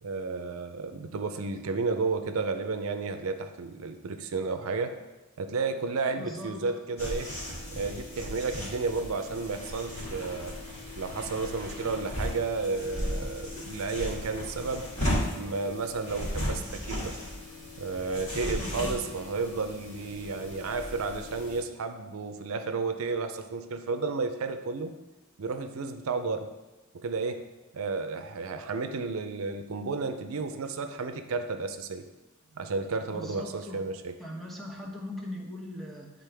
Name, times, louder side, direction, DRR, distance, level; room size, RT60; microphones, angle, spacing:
voice 1, 0.0-4.9 5.4-7.3 7.8-10.5 11.0-14.9 15.4-17.2 17.8-24.9 25.4-26.5 26.9-27.5 27.7-32.1 32.6-34.1, right 4 dB, 85° right, 8 dB, 0.5 m, -32 dB
voice 2, 6.2-6.8 18.6-19.3 19.6-19.7 33.1-33.8 34.2-36.1, left 1 dB, ahead, -2 dB, 0.9 m, -40 dB
sound 1, 7.0-21.6, left 1 dB, 35° left, 2.0 m, -36 dB
9.1 x 3.9 x 3.4 m, 1.1 s
head